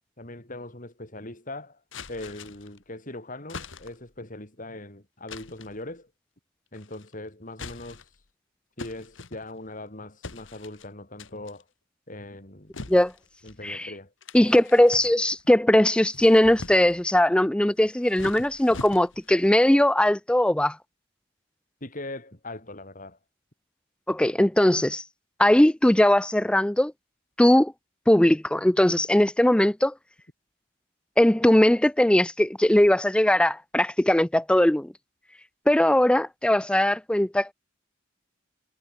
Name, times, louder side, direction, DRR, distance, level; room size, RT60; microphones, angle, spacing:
voice 1, 0.2-1.8 2.1-6.1 6.7-8.1 8.8-11.6 12.1-12.7 13.4-14.1 21.8-23.2, left 2 dB, 40° left, 4.4 m, -40 dB
sound 1, 1.9-2.8 3.5-4.1 5.3-5.8 6.7-7.1 7.5-8.2 8.8-9.8 10.2-10.9 11.2-11.6 12.7-13.6 14.2-15.5 16.0-17.0 17.8-19.4, left 3 dB, 70° left, 1.6 m, -43 dB
voice 2, 14.3-20.8 24.1-25.0 25.4-26.9 27.4-27.7 28.1-29.9 31.2-34.9 35.7-37.5, left 1 dB, 5° left, 0.4 m, -20 dB
head